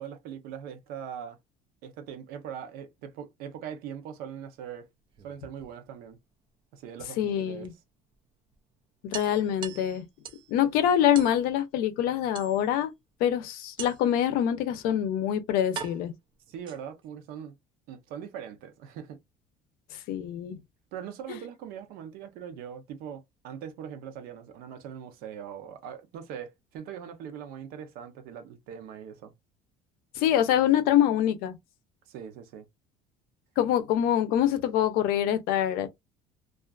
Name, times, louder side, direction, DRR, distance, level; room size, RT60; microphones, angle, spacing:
voice 1, 0.0-1.4 1.8-4.9 5.2-6.2 6.7-7.7 16.5-17.5 17.9-19.2 20.9-29.3 32.1-32.7, right 8 dB, 65° right, 0.7 m, -41 dB
sound 1, 5.0-6.2 7.6-7.7 8.1-8.2 8.5-8.6 9.1-10.5 11.1-11.4 12.3-12.9 13.8-14.2 15.0-15.1 15.7-17.1, right 7 dB, 30° right, 0.3 m, -42 dB
voice 2, 7.2-7.7 9.1-10.0 10.5-12.9 13.2-16.1 20.1-20.6 21.3-21.4 30.2-31.6 33.6-35.9, left 10 dB, 65° left, 0.6 m, -25 dB
2.4 x 2.4 x 2.3 m
cardioid pair, 170°, 16 cm